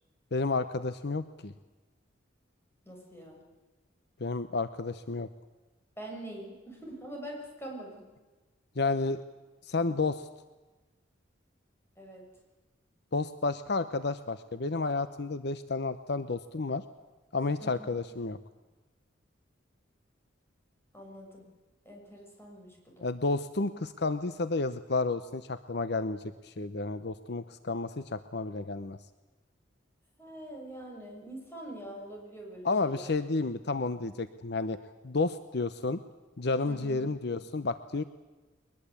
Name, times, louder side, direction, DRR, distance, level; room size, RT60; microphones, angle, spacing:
voice 1, 0.3-1.5 4.2-5.3 8.8-9.2 9.6-10.3 13.1-16.8 17.3-18.4 23.0-29.0 32.6-34.8 35.0-36.0 36.4-38.0, left 3 dB, 60° left, 12 dB, 0.8 m, -31 dB
voice 2, 2.9-3.4 6.0-8.1 12.0-12.2 17.6-18.0 20.9-21.5 21.9-23.1 30.2-33.1 36.7-37.1, right 1 dB, 15° left, -1 dB, 7.0 m, -44 dB
22.5 x 20.5 x 8.5 m, 1.2 s
head